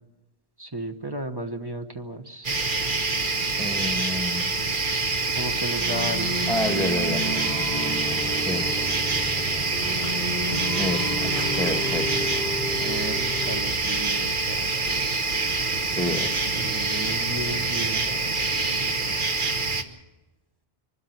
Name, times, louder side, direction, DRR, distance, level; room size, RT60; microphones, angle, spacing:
voice 1, 0.6-2.5 5.3-6.4 12.8-15.5 16.6-18.1, right 1 dB, 25° right, 6 dB, 1.1 m, -34 dB
sound 1, 2.4-19.8, right 3 dB, 50° right, 1.3 m, -26 dB
voice 2, 3.6-4.5 6.5-7.3 8.5-8.7 10.0-10.1 10.8-12.1 15.9-16.3, left 1 dB, ahead, 6 dB, 1.3 m, -29 dB
sound 2, 5.7-13.7, left 1 dB, 75° right, 5.1 m, -31 dB
24.5 x 12.5 x 9.2 m, 1.1 s
omnidirectional pair, 1.1 m